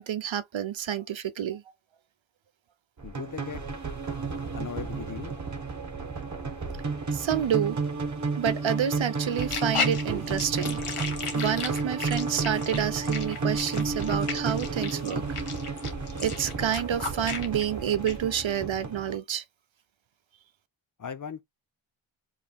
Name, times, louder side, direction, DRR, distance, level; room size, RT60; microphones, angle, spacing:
voice 1, 0.0-1.6 7.1-7.8 8.4-10.8 11.3-15.2 16.2-19.4, right 9 dB, 65° right, 0.8 m, -29 dB
voice 2, 3.0-3.6 4.5-5.3 21.0-21.4, left 7 dB, 40° left, 0.5 m, -38 dB
sound 1, 3.0-19.2, right 4 dB, 35° right, 1.1 m, -32 dB
sound 2, 9.3-17.7 18.1-18.2, left 5 dB, 90° left, 1.4 m, -35 dB
5.3 x 3.4 x 2.3 m
wide cardioid pair, 90°, 50 cm